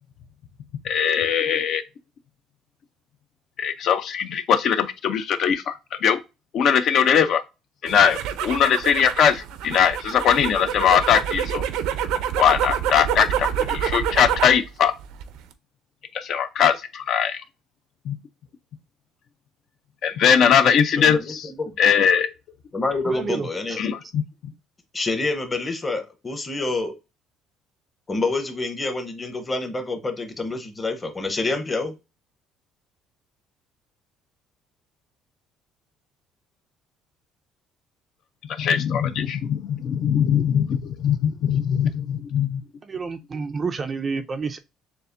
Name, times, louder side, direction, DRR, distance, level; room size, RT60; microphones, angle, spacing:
voice 1, 0.8-1.8 3.6-6.2 6.5-7.4 7.8-11.6 12.4-14.9 16.1-17.4 18.1-18.2 20.0-21.4 21.8-22.3 23.8-24.2 38.6-42.6, left 8 dB, 45° left, 0.4 m, -20 dB
sound 1, 7.9-14.6 15.0-15.5, right 9 dB, 75° right, 0.5 m, -27 dB
voice 2, 21.0-21.7 22.7-23.8 24.9-26.9 28.1-31.9, left 3 dB, 15° left, 0.8 m, -27 dB
voice 3, 23.0-23.8 42.8-44.6, right 5 dB, 25° right, 0.4 m, -29 dB
6.8 x 2.4 x 2.5 m
cardioid pair, 160°, 0 cm